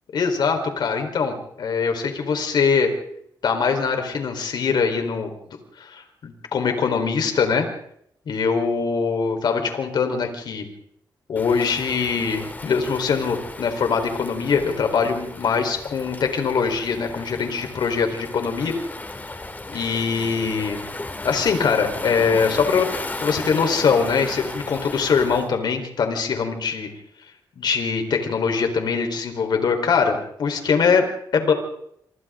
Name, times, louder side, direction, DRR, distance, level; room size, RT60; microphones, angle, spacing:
voice 1, 0.1-2.9 3.4-5.3 5.8-7.7 8.3-10.6 11.3-18.7 19.7-20.8 21.2-26.9 27.6-31.5, left 5 dB, 65° left, 5 dB, 4.3 m, -22 dB
Waves surf, 11.4-25.5, left 2 dB, 20° left, 2.7 m, -35 dB
27.0 x 26.0 x 3.9 m, 0.73 s
cardioid pair, 90°, 8 cm